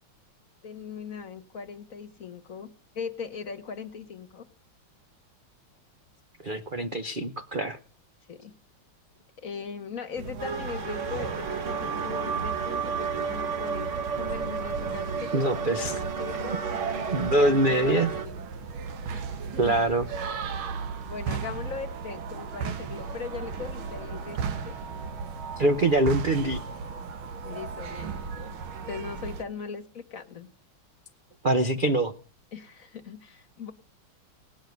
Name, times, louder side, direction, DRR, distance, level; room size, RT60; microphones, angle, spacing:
voice 1, 0.6-2.7 2.9-4.4 8.3-8.5 9.4-18.4 19.1-19.8 21.1-24.7 27.4-28.1 28.4-28.6 28.9-30.5 32.5-33.7, left 6 dB, 45° left, 9 dB, 1.5 m, -39 dB
voice 2, 6.4-7.8 15.3-15.9 17.1-18.1 19.6-20.1 25.6-26.6 31.4-32.1, right 1 dB, 60° right, 8 dB, 0.5 m, -24 dB
sound 1, 10.1-29.4, right 5 dB, 80° right, 1.9 m, -36 dB
sound 2, 10.4-18.3, right 6 dB, 40° right, 1.5 m, -32 dB
19.0 x 6.5 x 9.4 m, 0.38 s
omnidirectional pair, 2.3 m